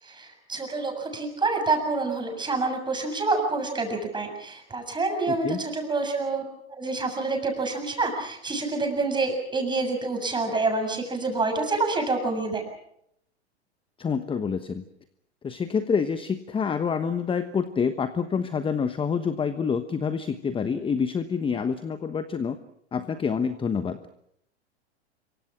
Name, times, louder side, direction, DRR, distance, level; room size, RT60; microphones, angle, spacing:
voice 1, 0.0-6.4 6.7-12.6, right 3 dB, 15° right, 5 dB, 7.3 m, -27 dB
voice 2, 5.3-5.6 14.0-14.8 15.4-22.6 22.9-24.0, left 6 dB, 15° left, 11 dB, 1.2 m, -27 dB
27.0 x 24.5 x 6.2 m, 0.74 s
hypercardioid pair, 100°, 34 cm